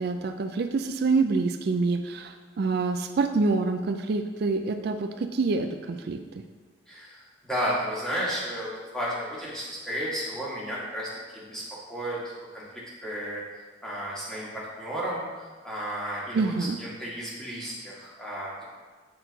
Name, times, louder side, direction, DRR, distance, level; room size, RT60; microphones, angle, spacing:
voice 1, 0.0-6.4 16.3-16.8, right 3 dB, 55° right, 7 dB, 0.3 m, -26 dB
voice 2, 6.9-11.6 11.9-13.4 13.8-18.6, equal, 5° left, -7 dB, 1.6 m, -33 dB
7.7 x 4.4 x 3.9 m, 1.4 s
head